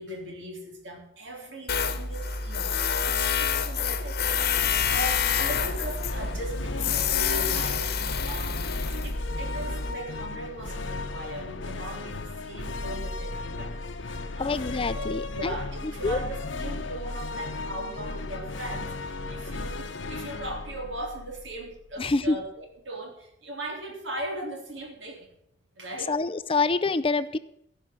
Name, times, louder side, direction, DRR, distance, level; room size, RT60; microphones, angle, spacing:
voice 1, 0.0-7.9 8.2-14.6 14.9-25.3 25.8-26.1, right 1 dB, 75° right, 1 dB, 3.5 m, -39 dB
Tools, 1.7-9.9, left 6 dB, 55° left, 1.1 m, -28 dB
sound 1, 4.5-21.9, left 2 dB, 90° left, 1.0 m, -35 dB
voice 2, 14.4-15.6 16.0-16.2 22.0-22.4 26.1-27.4, left 3 dB, 30° left, 14 dB, 0.5 m, -26 dB
15.0 x 5.8 x 8.7 m, 0.72 s
head